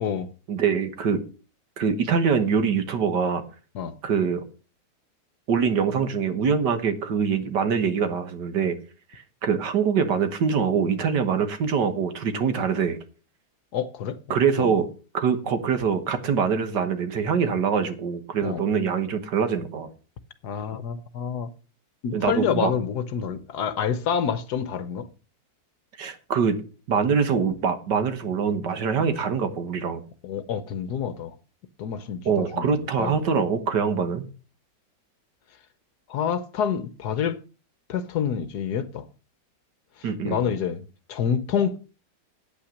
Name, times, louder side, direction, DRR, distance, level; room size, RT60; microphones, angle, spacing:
voice 1, 0.5-1.2 1.8-3.4 4.0-4.4 5.5-8.8 9.1-13.0 14.3-14.9 15.1-19.9 22.1-22.7 26.0-26.6 26.9-30.0 32.3-34.2 40.0-40.4, right 6 dB, 65° right, 1.9 m, -24 dB
voice 2, 13.7-14.2 14.6-14.7 18.4-18.6 20.4-21.5 22.0-25.1 30.2-31.3 31.8-33.2 36.1-37.4 37.9-39.0 40.2-40.8 41.1-41.8, left 7 dB, 65° left, 1.3 m, -27 dB
9.0 x 8.7 x 6.4 m
omnidirectional pair, 2.0 m